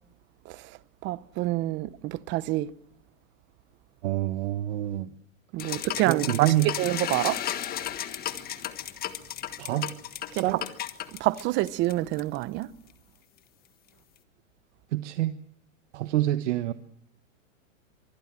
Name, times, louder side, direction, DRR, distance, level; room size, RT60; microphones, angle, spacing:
voice 1, 1.0-2.7 5.5-6.5 6.8-7.4 10.4-10.5 11.1-12.7, right 17 dB, 30° right, 0.8 m, -27 dB
voice 2, 4.0-5.1 5.6-5.8 6.0-6.7 9.6-9.9 10.3-10.6 14.9-15.4 15.9-16.7, right 14 dB, 60° right, 1.4 m, -27 dB
sound 1, 5.6-12.4, left 11 dB, 20° left, 1.5 m, -34 dB
24.5 x 20.5 x 7.6 m
hypercardioid pair, 140°, 41 cm